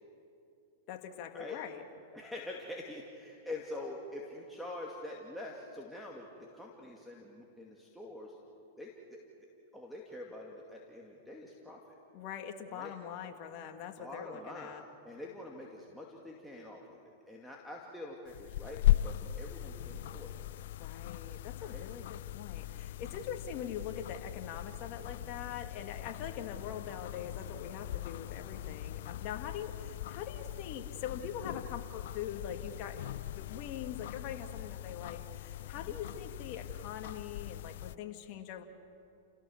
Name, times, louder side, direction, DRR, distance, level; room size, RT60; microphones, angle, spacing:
voice 1, 0.9-1.8 12.1-14.8 20.8-38.6, left 8 dB, 45° left, 5 dB, 1.9 m, -43 dB
voice 2, 2.1-8.4 8.8-9.2 9.7-11.8 12.7-12.9 14.0-20.4 21.6-21.8 35.7-36.0, left 1 dB, ahead, -3 dB, 2.3 m, -45 dB
sound 1, 18.3-38.0, left 14 dB, 70° left, 0.4 m, -38 dB
30.0 x 17.0 x 7.2 m, 2.7 s
hypercardioid pair, 125°, 0 cm